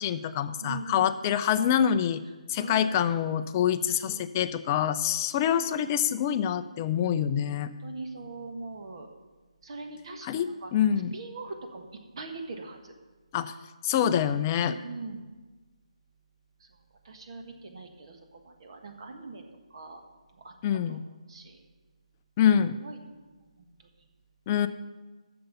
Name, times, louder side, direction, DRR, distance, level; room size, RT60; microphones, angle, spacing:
voice 1, 0.0-2.2 2.5-7.7 10.2-11.2 13.3-13.5 13.8-14.8 20.6-21.0 22.4-22.8 24.5-24.7, left 9 dB, 20° left, 10 dB, 0.4 m, -26 dB
voice 2, 0.6-1.4 2.5-2.9 4.0-4.2 5.6-5.9 7.5-9.1 9.6-10.7 11.1-11.9 12.2-12.9 14.7-15.2 17.0-18.2 18.4-19.4 19.7-20.0 20.4-20.5 20.9-21.0 21.3-21.6 22.8-23.0, right 3 dB, 50° right, 4 dB, 1.5 m, -41 dB
7.7 x 6.8 x 8.2 m, 1.2 s
figure-of-eight pair, 155°, 4 cm